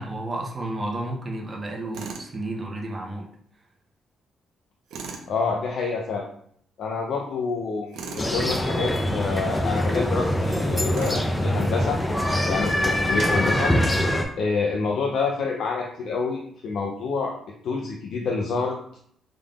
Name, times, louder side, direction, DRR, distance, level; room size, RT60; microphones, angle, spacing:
voice 1, 0.0-3.3, right 1 dB, 30° right, 0 dB, 0.8 m, -32 dB
Tools, 1.9-2.3 4.9-5.3 7.9-8.3 10.9-11.3, right 4 dB, 85° right, 0.5 m, -36 dB
voice 2, 5.3-6.3 6.8-12.0 12.5-13.7 14.4-17.3 17.6-18.8, left 4 dB, 70° left, -1 dB, 0.5 m, -27 dB
sound 1, 8.2-14.2, left 1 dB, 15° left, 0.5 m, -23 dB
3.5 x 3.4 x 2.4 m, 0.65 s
cardioid pair, 90°, 0 cm